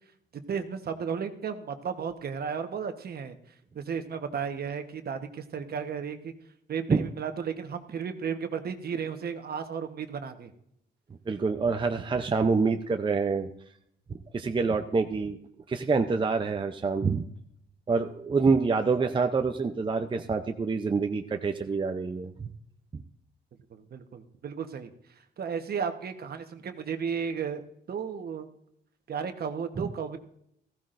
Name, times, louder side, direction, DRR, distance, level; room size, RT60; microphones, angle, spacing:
voice 1, 0.5-3.4 3.7-6.3 6.7-10.5 23.7-24.9 25.4-28.5 29.1-30.2, right 6 dB, 50° right, 7 dB, 1.2 m, -34 dB
voice 2, 11.3-13.5 14.3-15.4 15.7-17.2 17.9-22.5 22.9-23.0 29.8-29.9, right 4 dB, 25° right, 6 dB, 0.6 m, -26 dB
15.0 x 14.5 x 2.6 m, 0.73 s
cardioid pair, 90°, 20 cm